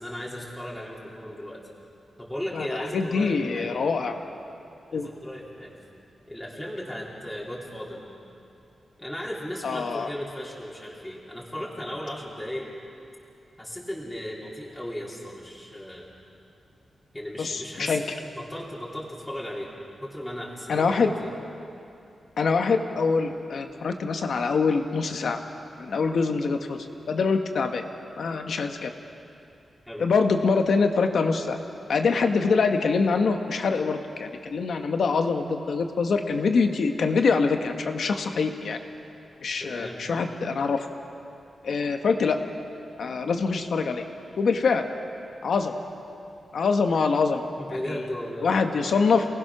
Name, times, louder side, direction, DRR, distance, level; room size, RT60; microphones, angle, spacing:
voice 1, 0.0-1.6 2.2-3.8 4.9-5.7 6.3-8.1 9.0-12.7 13.6-16.0 17.1-19.7 20.0-21.3 29.9-30.1 39.6-40.1 47.6-48.5, equal, 5° left, -6 dB, 3.2 m, -36 dB
voice 2, 2.9-4.1 4.9-5.1 9.6-10.1 17.4-18.0 20.7-21.1 22.4-25.4 25.8-27.8 28.2-28.9 30.0-31.6 31.9-38.8 39.4-40.9 41.6-42.4 43.0-44.0 44.4-44.8 45.4-45.7 46.5-48.0 48.4-49.2, left 4 dB, 60° left, 5 dB, 1.5 m, -24 dB
28.5 x 19.0 x 6.1 m, 2.7 s
wide cardioid pair, 170°, 0 cm